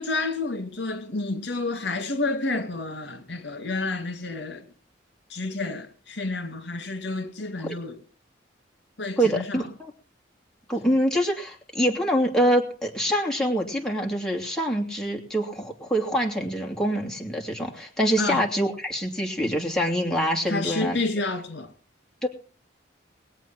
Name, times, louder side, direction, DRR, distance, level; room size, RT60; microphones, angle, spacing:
voice 1, 0.0-4.7 5.3-8.0 9.0-9.7 18.2-18.5 20.5-21.7, left 3 dB, 65° left, 2.1 m, -30 dB
voice 2, 9.2-9.9 10.7-21.0 22.2-22.3, equal, 5° left, 2.9 m, -25 dB
21.5 x 8.4 x 6.1 m
head